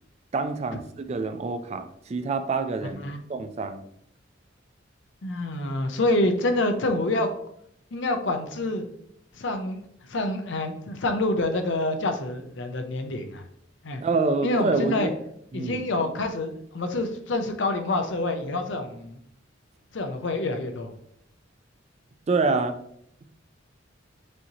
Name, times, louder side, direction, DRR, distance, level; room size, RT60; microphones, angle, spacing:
voice 1, 0.3-3.0 3.3-3.8 14.0-15.1 15.5-15.8 22.3-22.8, right 3 dB, 35° right, 9 dB, 0.3 m, -26 dB
voice 2, 5.2-7.3 7.9-8.9 9.3-13.4 13.8-14.0 14.4-15.1 15.5-19.2 19.9-20.9, left 2 dB, 70° left, 6 dB, 0.6 m, -27 dB
6.2 x 3.0 x 2.8 m, 0.70 s
head